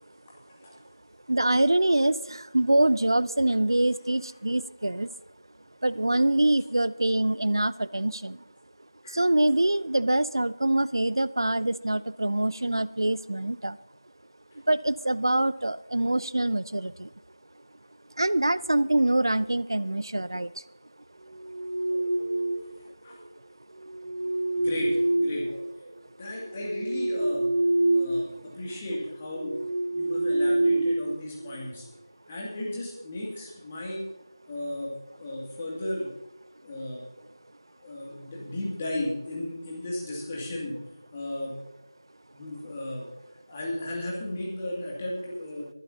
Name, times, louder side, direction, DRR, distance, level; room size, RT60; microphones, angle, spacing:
voice 1, 1.3-5.1 5.8-8.4 9.1-13.8 14.5-17.1 18.2-20.6, right 1 dB, 75° right, 17 dB, 0.4 m, -25 dB
sound 1, 21.3-22.8 23.8-25.9 26.4-28.3 28.6-28.8 29.3-31.7, right 1 dB, 50° right, 2.5 m, -27 dB
voice 2, 24.5-25.5 26.2-27.5 27.9-29.6 29.9-31.9 32.3-34.0 34.5-36.1 36.6-37.0 37.8-40.8 41.1-41.6 42.3-43.0 43.5-45.7, left 1 dB, 20° left, -4 dB, 2.5 m, -34 dB
21.0 x 12.0 x 2.8 m, 0.91 s
figure-of-eight pair, 170°, 2 cm